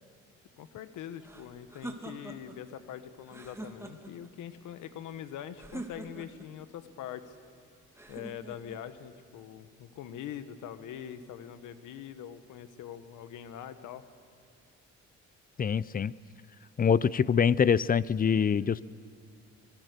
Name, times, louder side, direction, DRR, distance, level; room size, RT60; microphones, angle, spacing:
voice 1, 0.6-7.4 8.1-14.0, left 9 dB, 85° left, 11 dB, 1.3 m, -43 dB
sound 1, 1.2-2.6 3.2-4.3 5.6-6.5 8.0-8.8, right 1 dB, 10° right, 2.3 m, -44 dB
voice 2, 15.6-16.1 16.8-18.8, left 7 dB, 30° left, 20 dB, 0.5 m, -24 dB
24.5 x 21.0 x 6.7 m, 2.2 s
cardioid pair, 90°, 30 cm